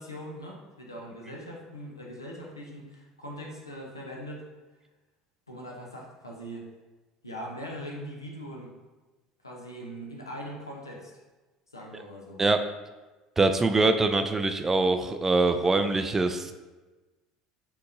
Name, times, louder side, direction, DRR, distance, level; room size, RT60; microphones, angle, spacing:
voice 1, 0.0-4.5 5.5-6.7 7.2-8.7 9.4-11.1 11.7-12.4, equal, 85° left, -1 dB, 0.7 m, -41 dB
voice 2, 13.4-16.5, right 3 dB, 15° right, 8 dB, 0.3 m, -24 dB
4.4 x 3.6 x 2.8 m, 1.2 s
figure-of-eight pair, 70°, 2 cm